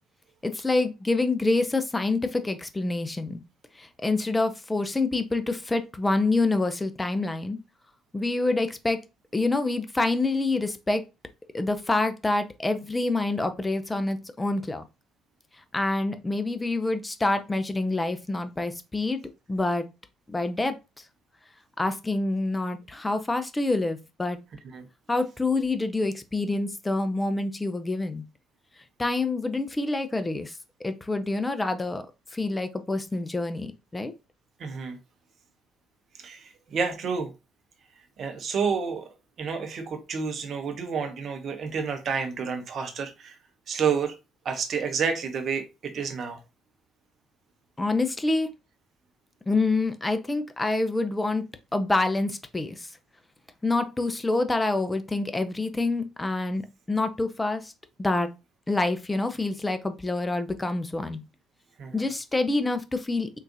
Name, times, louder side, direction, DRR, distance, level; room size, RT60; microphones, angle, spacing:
voice 1, 0.4-3.4 3.8-7.6 8.1-9.0 9.3-11.0 11.5-14.8 15.7-19.2 19.5-19.9 20.3-20.8 21.8-24.4 25.1-28.2 29.0-32.0 32.3-34.1 47.8-48.5 49.5-51.5 51.7-52.9 53.6-57.7 58.0-58.3 58.7-61.2 61.9-63.4, left 2 dB, 15° left, 0.5 m, -27 dB
voice 2, 34.6-35.0 36.2-37.3 38.2-39.1 39.4-43.4 43.7-44.1 44.4-46.4 61.8-62.1, right 6 dB, 50° right, 0.7 m, -29 dB
3.7 x 2.5 x 2.7 m
figure-of-eight pair, 50°, 0 cm